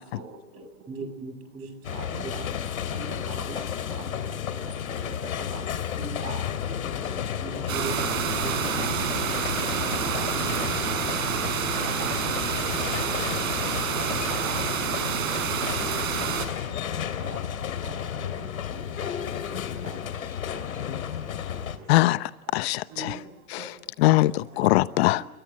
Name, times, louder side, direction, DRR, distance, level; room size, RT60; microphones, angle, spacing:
voice 1, 0.1-0.6 1.9-2.5 2.9-3.6 3.9-4.2 4.9-5.7 6.0-7.0 8.0-8.1 8.4-9.1 9.7-10.3 10.6-10.7 11.1-11.4 11.8-12.1 12.7-12.9 13.6-13.7 14.3-14.5 15.3-15.4 16.9-17.4 17.8-19.3 19.8-19.9 20.5-20.6 20.9-21.0 22.9-23.2 23.6-23.7 24.6-24.7 25.1-25.2, right 6 dB, 35° right, 8 dB, 8.0 m, -42 dB
voice 2, 0.9-1.8 2.2-2.3 3.5-3.6 7.4-8.1 8.4-8.9, right 3 dB, 15° right, 3 dB, 3.5 m, -37 dB
sound 1, 1.8-21.8, left 9 dB, 80° left, 3.1 m, -32 dB
sound 2, 7.7-16.5, right 7 dB, 75° right, 5.8 m, -28 dB
voice 3, 21.9-23.2 23.5-23.7 24.0-25.2, left 17 dB, 50° left, 15 dB, 1.0 m, -22 dB
29.5 x 23.0 x 7.6 m, 1.0 s
hypercardioid pair, 130°, 41 cm